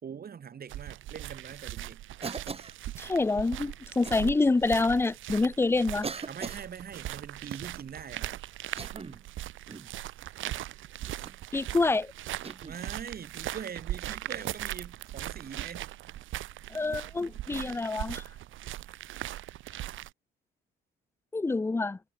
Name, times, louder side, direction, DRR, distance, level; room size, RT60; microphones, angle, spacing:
voice 1, 0.0-2.0 6.3-8.4 12.6-15.8, right 7 dB, 50° right, 3.8 m, -42 dB
sound 1, 0.7-20.1, right 14 dB, 80° right, 1.2 m, -39 dB
Cough, 2.2-2.8 4.0-4.2 5.1-5.2 6.0-6.7 8.6-9.3 9.7-10.0 11.1-11.4 12.4-12.8 14.3-14.5 16.8-16.9 18.6-18.8, right 4 dB, 30° right, 2.5 m, -40 dB
voice 2, 3.0-6.1 11.5-12.1 16.7-18.2 21.3-22.0, left 3 dB, 10° left, 0.4 m, -27 dB
cardioid pair, 90°, 20 cm